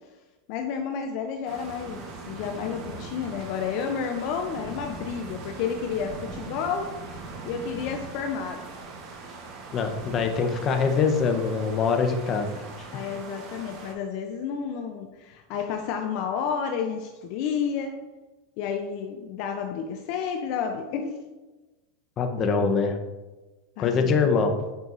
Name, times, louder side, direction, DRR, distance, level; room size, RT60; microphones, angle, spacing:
voice 1, 0.5-6.9 7.2-8.6 12.9-17.9 18.6-21.2 23.8-24.3, left 7 dB, 55° left, 4 dB, 0.5 m, -31 dB
sound 1, 1.4-13.9, right 3 dB, 50° right, 1.2 m, -40 dB
voice 2, 9.7-12.9 22.2-23.0 23.8-24.5, left 5 dB, 35° left, 6 dB, 0.8 m, -24 dB
8.0 x 4.6 x 2.6 m, 1.2 s
supercardioid pair, 120°, 0 cm